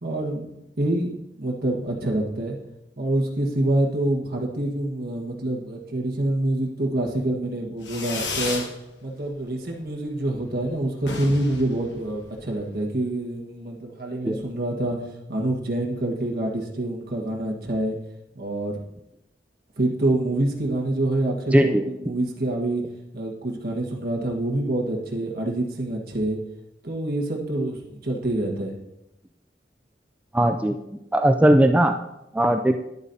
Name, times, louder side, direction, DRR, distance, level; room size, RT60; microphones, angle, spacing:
voice 1, 0.0-2.6 3.0-8.7 9.0-15.0 15.3-18.0 18.3-18.8 19.8-22.8 23.1-26.4 26.8-28.8, right 1 dB, 60° right, 0 dB, 1.5 m, -26 dB
Fireworks, 7.8-8.7 9.1-9.7 9.9-10.0 10.3-10.4 10.6-10.7 11.0-12.6, left 3 dB, 85° left, 1.2 m, -33 dB
voice 2, 21.5-21.8 30.3-30.8 31.1-31.9 32.3-32.8, right 1 dB, 10° right, 6 dB, 0.3 m, -18 dB
11.0 x 8.1 x 2.7 m, 0.86 s
head